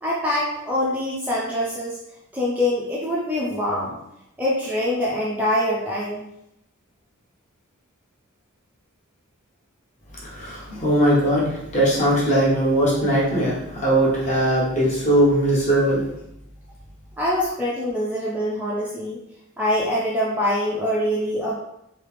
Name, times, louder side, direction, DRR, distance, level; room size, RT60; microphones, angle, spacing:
voice 1, 0.0-2.0 2.3-4.0 4.4-6.3 17.2-19.2 19.6-21.6, left 1 dB, 5° right, -6 dB, 0.4 m, -24 dB
voice 2, 10.2-16.0, right 1 dB, 35° left, -5 dB, 1.1 m, -20 dB
3.2 x 2.8 x 3.3 m, 0.80 s
head